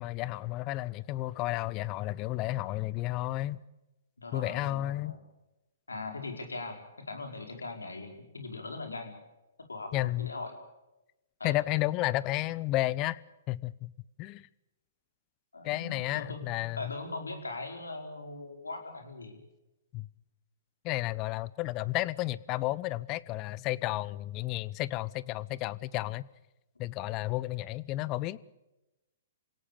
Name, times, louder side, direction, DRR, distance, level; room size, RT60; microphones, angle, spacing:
voice 1, 0.0-3.6 4.3-5.2 9.9-10.3 11.4-13.2 13.5-13.9 14.2-14.5 15.6-16.9 19.9-20.1 20.8-26.3 26.8-28.4, left 17 dB, 35° left, 20 dB, 0.8 m, -32 dB
voice 2, 4.2-5.2 5.9-9.1 9.7-10.5 11.4-11.6 15.5-19.4, left 3 dB, 85° left, 5 dB, 5.0 m, -40 dB
27.5 x 17.5 x 7.1 m, 0.98 s
hypercardioid pair, 120°, 0 cm